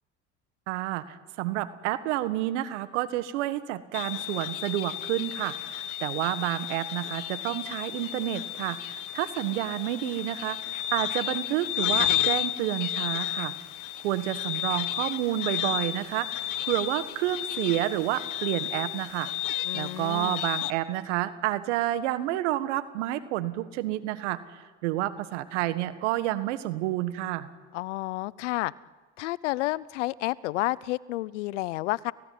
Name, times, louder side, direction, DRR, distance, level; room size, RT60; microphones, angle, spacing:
voice 1, 0.7-13.5 14.0-16.3 16.6-19.3 19.7-27.5, right 14 dB, 85° right, 13 dB, 1.6 m, -30 dB
sound 1, 3.9-20.7, left 14 dB, 60° left, 1.4 m, -32 dB
voice 2, 19.6-20.4 27.7-28.7 29.2-32.1, left 18 dB, 90° left, 22 dB, 0.7 m, -30 dB
30.0 x 17.0 x 9.6 m, 1.4 s
hypercardioid pair, 75°, 35 cm